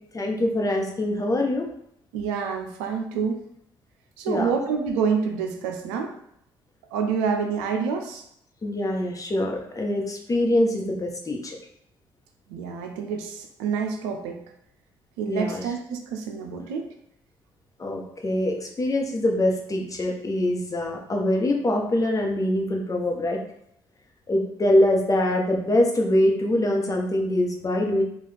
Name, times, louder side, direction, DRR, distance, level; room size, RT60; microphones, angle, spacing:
voice 1, 0.1-1.6 4.3-4.5 8.6-11.6 15.3-15.6 17.8-23.4 24.3-28.0, left 1 dB, 30° left, 1 dB, 0.9 m, -24 dB
voice 2, 2.1-3.4 4.2-6.1 6.9-8.2 12.5-14.4 15.2-16.8, right 6 dB, 85° right, 4 dB, 0.5 m, -27 dB
3.8 x 2.4 x 3.4 m, 0.76 s
hypercardioid pair, 55°, 11 cm